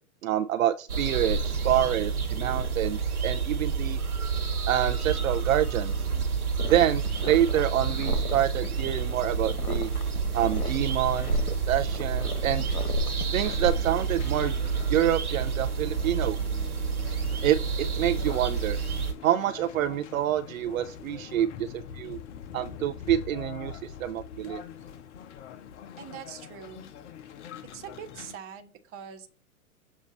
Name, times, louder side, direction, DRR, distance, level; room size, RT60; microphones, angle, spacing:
voice 1, 0.2-4.0 4.7-5.9 6.7-9.9 10.3-11.3 11.7-12.7 13.3-14.5 14.9-16.4 17.4-18.8 19.2-22.2 22.5-24.6, right 11 dB, 70° right, 10 dB, 0.6 m, -27 dB
sound 1, 0.9-19.1, right 5 dB, 90° right, 1.5 m, -29 dB
sound 2, 6.6-13.7, left 5 dB, 85° left, 1.2 m, -40 dB
sound 3, 13.3-28.3, left 8 dB, 55° left, 1.0 m, -44 dB
voice 2, 26.0-26.9 27.7-29.3, right 8 dB, 30° right, 6 dB, 1.2 m, -43 dB
7.2 x 2.8 x 5.3 m, 0.35 s
hypercardioid pair, 110°, 43 cm